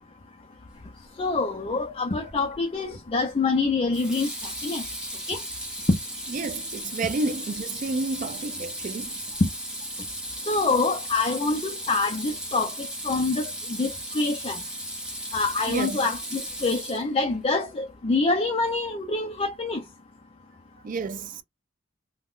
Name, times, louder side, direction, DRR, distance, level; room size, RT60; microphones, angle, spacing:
voice 1, 1.2-4.9 5.3-5.4 10.5-14.6 15.3-19.8, left 3 dB, 25° left, 0.4 m, -26 dB
Water tap faucet / Sink (filling or washing), 2.3-2.6 3.9-17.3, right 1 dB, 5° right, 0.7 m, -36 dB
voice 2, 6.3-9.2 15.7-16.0 20.8-21.4, right 3 dB, 40° right, 0.3 m, -30 dB
2.4 x 2.1 x 3.6 m
head